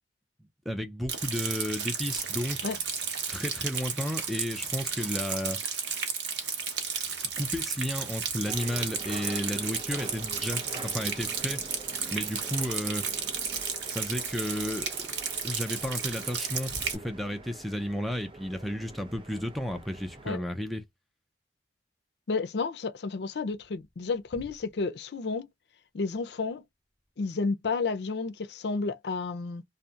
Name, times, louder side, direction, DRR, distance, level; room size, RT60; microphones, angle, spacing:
voice 1, 0.7-2.7 3.3-5.6 7.4-11.6 12.1-13.1 13.9-15.1 15.4-20.8, equal, ahead, 0.3 m, -33 dB
Rain, 1.1-17.0, right 6 dB, 80° right, 0.8 m, -33 dB
sound 1, 8.5-20.3, right 2 dB, 30° right, 0.6 m, -45 dB
voice 2, 22.3-25.5 25.9-26.6 27.2-29.6, left 4 dB, 70° left, 0.5 m, -31 dB
2.7 x 2.0 x 2.3 m
head